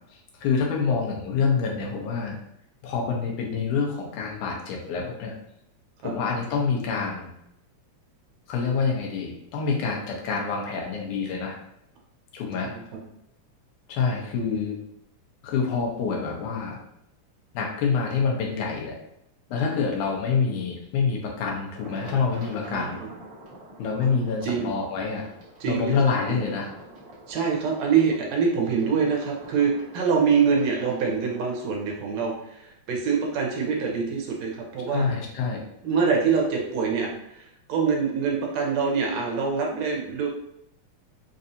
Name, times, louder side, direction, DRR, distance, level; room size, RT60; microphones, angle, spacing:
voice 1, 0.4-2.4 2.8-5.3 6.0-7.3 8.5-11.6 12.3-12.7 13.9-14.8 15.4-16.8 17.5-19.0 19.5-23.1 23.8-25.2 25.7-26.7 34.9-35.6, left 5 dB, 80° left, -1 dB, 2.2 m, -26 dB
sound 1, 21.8-31.6, right 1 dB, 55° right, 1.0 m, -46 dB
voice 2, 22.7-23.1 24.0-24.7 25.6-26.0 26.3-26.4 27.3-35.1 35.8-40.3, right 5 dB, 70° right, -1 dB, 1.8 m, -25 dB
5.3 x 2.6 x 2.6 m, 0.79 s
omnidirectional pair, 3.5 m